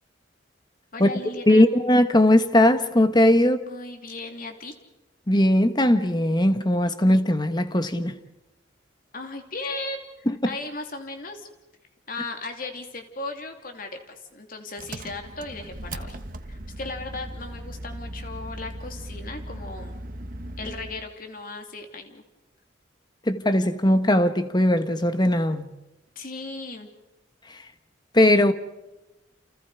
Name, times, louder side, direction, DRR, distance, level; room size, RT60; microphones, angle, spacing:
voice 1, 0.9-1.7 3.4-4.8 9.1-11.5 12.1-16.2 16.4-20.0 20.6-22.2 26.1-26.9, left 3 dB, 50° left, 2.9 m, -36 dB
voice 2, 1.5-3.6 5.3-8.2 10.3-10.4 23.3-25.7 27.5-27.6 28.1-28.5, left 1 dB, 25° left, 1.4 m, -19 dB
Engine, 14.8-21.1, right 1 dB, 50° right, 1.4 m, -38 dB
30.0 x 28.5 x 4.9 m
head